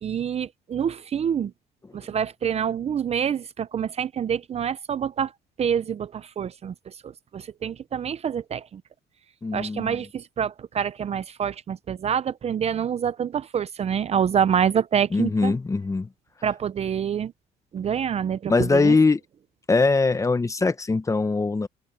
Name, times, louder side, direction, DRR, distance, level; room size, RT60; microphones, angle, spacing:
voice 1, 0.0-1.5 1.9-5.3 5.6-8.8 9.5-15.5 16.4-17.3 17.7-19.0, right 8 dB, 40° right, 0.6 m, -26 dB
voice 2, 9.4-10.0 15.1-16.1 18.5-19.2 19.7-21.7, left 3 dB, 20° left, 1.1 m, -21 dB
open air
cardioid pair, 110°, 17 cm